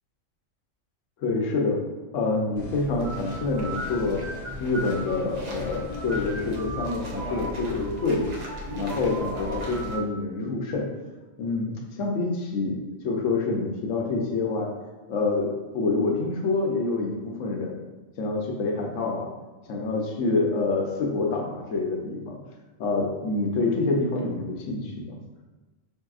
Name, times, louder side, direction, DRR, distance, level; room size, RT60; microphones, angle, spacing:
voice 1, 1.2-1.8 2.1-4.2 4.6-8.3 8.8-10.9 11.4-14.7 15.1-17.8 18.2-19.3 19.7-22.4 22.8-25.2, left 3 dB, 75° left, 0 dB, 1.0 m, -27 dB
sound 1, 2.6-6.9, left 1 dB, 40° left, 0.8 m, -40 dB
sound 2, 3.0-10.0, equal, 60° right, 0.4 m, -36 dB
5.3 x 2.7 x 2.4 m, 1.2 s
omnidirectional pair, 1.4 m